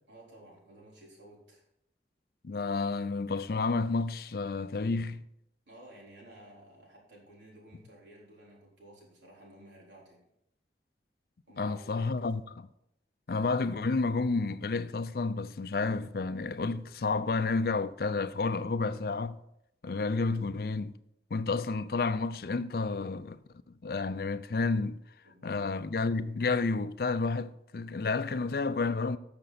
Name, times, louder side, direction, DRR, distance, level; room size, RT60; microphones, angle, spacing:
voice 1, 0.1-1.6 5.7-10.2 11.5-12.1 25.2-25.7, right 1 dB, 85° right, 3.9 m, -54 dB
voice 2, 2.4-5.2 11.6-12.7 13.3-19.4 19.8-20.9 21.3-23.4 23.8-25.0 25.4-29.2, left 3 dB, 55° left, 0.5 m, -30 dB
13.0 x 6.7 x 4.1 m
head